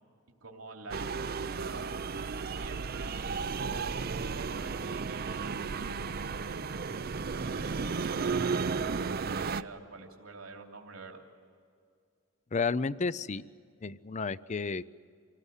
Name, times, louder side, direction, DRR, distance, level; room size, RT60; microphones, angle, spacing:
voice 1, 0.4-1.9 2.4-5.9 6.5-7.2 7.5-11.2, right 3 dB, 85° right, 1 dB, 2.9 m, -48 dB
sound 1, 0.9-9.6, right 5 dB, 45° right, 0.5 m, -34 dB
voice 2, 12.5-13.4 13.8-14.8, left 4 dB, 35° left, 18 dB, 0.5 m, -31 dB
26.5 x 18.0 x 8.2 m, 2.2 s
head